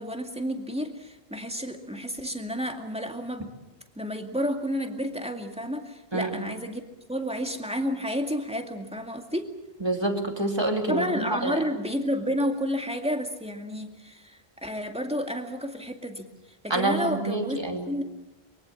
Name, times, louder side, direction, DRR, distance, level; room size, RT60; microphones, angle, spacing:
voice 1, 0.0-3.5 4.0-6.8 7.1-9.5 10.9-18.0, equal, 5° right, 4 dB, 2.2 m, -31 dB
voice 2, 9.8-11.6 16.7-17.9, right 2 dB, 25° right, 4 dB, 2.7 m, -27 dB
24.0 x 23.0 x 7.2 m, 1.0 s
omnidirectional pair, 1.1 m